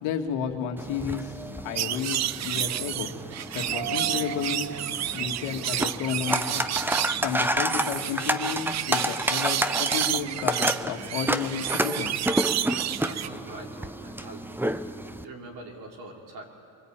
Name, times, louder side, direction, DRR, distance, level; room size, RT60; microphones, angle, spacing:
voice 1, 0.0-4.7 5.1-6.6 7.2-12.3, left 7 dB, 70° left, 3 dB, 2.4 m, -32 dB
sound 1, 0.8-15.2, right 1 dB, 5° right, 0.9 m, -30 dB
sound 2, 1.7-13.3, right 12 dB, 35° right, 0.6 m, -30 dB
Mallet percussion, 3.7-6.2, right 7 dB, 70° right, 5.1 m, -38 dB
voice 2, 13.0-14.6 15.2-16.4, right 2 dB, 50° right, 0 dB, 5.3 m, -43 dB
24.0 x 24.0 x 9.1 m, 2.5 s
supercardioid pair, 105°, 49 cm